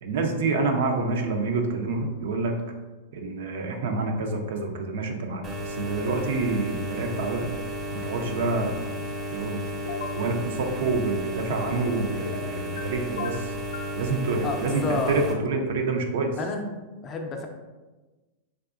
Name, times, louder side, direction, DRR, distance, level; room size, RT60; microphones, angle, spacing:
voice 1, 0.0-2.6 3.1-7.5 7.9-8.8 9.3-9.6 10.2-13.5 14.0-16.3, right 3 dB, 70° right, 3 dB, 0.5 m, -27 dB
sound 1, 5.4-15.3, equal, 25° right, 0.6 m, -33 dB
sound 2, 9.9-10.2 12.3-12.8 13.2-14.0, left 4 dB, 85° left, 0.4 m, -35 dB
voice 2, 14.4-15.3 16.4-16.6 17.0-17.5, left 3 dB, 30° left, 3 dB, 0.5 m, -30 dB
3.5 x 2.6 x 2.5 m, 1.2 s
hypercardioid pair, 120°, 0 cm